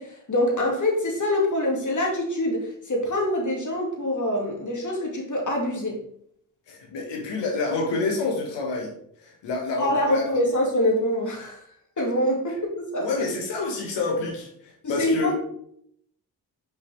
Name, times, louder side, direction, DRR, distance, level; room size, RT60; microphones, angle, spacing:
voice 1, 0.0-6.0 9.8-11.6 12.0-13.3 14.8-15.3, left 1 dB, 45° left, 0 dB, 2.3 m, -25 dB
voice 2, 6.7-8.9 9.4-10.4 13.0-14.5 14.9-15.3, left 3 dB, 85° left, 0 dB, 1.8 m, -27 dB
5.3 x 5.2 x 3.5 m, 0.68 s
supercardioid pair, 50°, 42 cm